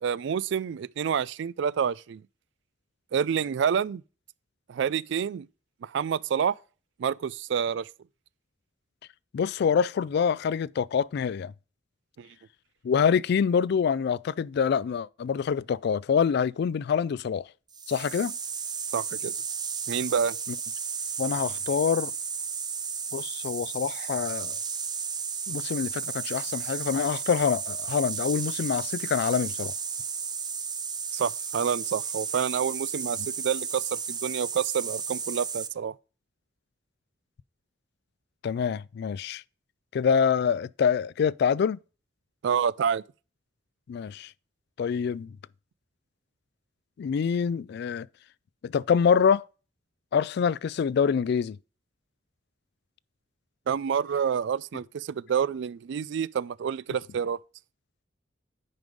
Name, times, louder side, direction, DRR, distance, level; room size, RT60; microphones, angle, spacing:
voice 1, 0.0-2.2 3.1-4.0 4.7-5.5 5.8-6.6 7.0-7.9 12.2-12.3 18.9-19.3 19.9-20.4 31.1-35.9 42.4-43.0 53.7-57.4, right 7 dB, 65° right, 0.3 m, -28 dB
voice 2, 9.3-11.5 12.8-17.5 17.9-18.3 21.2-22.1 23.1-24.6 25.5-29.7 38.4-39.4 39.9-41.8 43.9-44.3 44.8-45.4 47.0-48.1 48.6-49.4 50.1-51.6, left 6 dB, 60° left, 0.3 m, -26 dB
sound 1, 17.7-35.7, right 6 dB, 20° right, 0.7 m, -33 dB
9.3 x 5.4 x 5.1 m
head